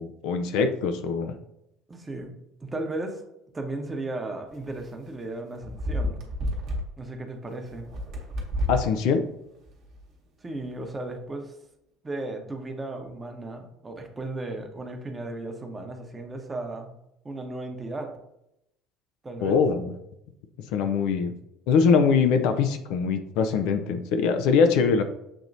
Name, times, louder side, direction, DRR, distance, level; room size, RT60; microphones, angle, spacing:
voice 1, 0.0-1.4 8.7-9.2 19.4-19.9 20.7-21.3 21.7-25.0, left 5 dB, 60° left, 7 dB, 0.4 m, -22 dB
voice 2, 1.9-2.3 2.6-3.2 3.5-6.2 7.0-7.9 10.4-11.6 12.0-16.9 17.2-18.1 19.2-19.6, right 2 dB, 20° right, 4 dB, 0.8 m, -35 dB
sound 1, 4.6-4.8 5.6-6.8 7.7-8.9 9.6-10.0, left 1 dB, 50° right, 1.0 m, -30 dB
6.8 x 2.9 x 2.6 m, 0.81 s
figure-of-eight pair, 65°, 0 cm